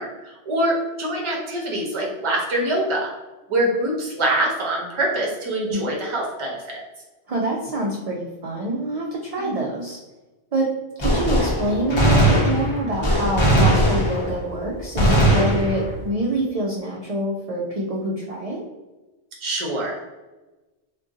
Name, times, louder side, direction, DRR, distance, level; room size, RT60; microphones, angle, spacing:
voice 1, 0.0-3.1 3.5-6.6 9.4-9.7 19.4-20.1, right 1 dB, 30° right, -2 dB, 0.7 m, -24 dB
voice 2, 7.3-10.0 10.5-10.7 11.0-18.6, right 1 dB, 60° right, -1 dB, 0.4 m, -26 dB
Gunshot gunfire, 11.0-14.5 15.0-16.1, right 1 dB, 35° left, 0.5 m, -19 dB
2.5 x 2.2 x 3.6 m, 1.1 s
omnidirectional pair, 1.1 m